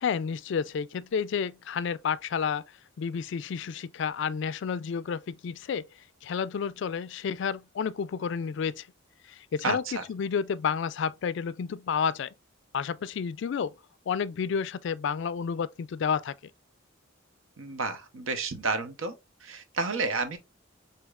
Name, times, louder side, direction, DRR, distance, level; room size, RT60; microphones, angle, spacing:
voice 1, 0.0-2.6 3.0-5.9 6.2-8.9 9.3-9.8 10.1-12.3 12.7-13.7 14.1-16.4, left 6 dB, 60° left, 0.3 m, -30 dB
voice 2, 9.6-10.0 17.6-19.1 19.4-20.4, right 4 dB, 80° right, 0.8 m, -31 dB
6.3 x 2.8 x 2.3 m
head